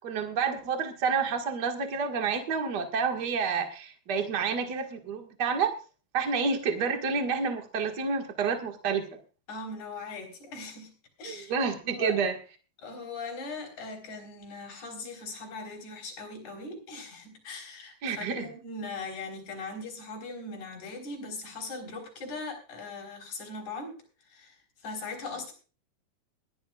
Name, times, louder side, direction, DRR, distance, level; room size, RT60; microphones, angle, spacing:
voice 1, 0.0-5.7 6.1-9.2 11.2-12.3 18.0-18.5, right 5 dB, 70° right, 4 dB, 0.9 m, -29 dB
voice 2, 9.5-11.6 11.8-12.2 12.8-24.0 24.3-25.5, left 3 dB, 45° left, 1 dB, 5.7 m, -40 dB
21.0 x 12.5 x 2.4 m, 0.35 s
omnidirectional pair, 5.0 m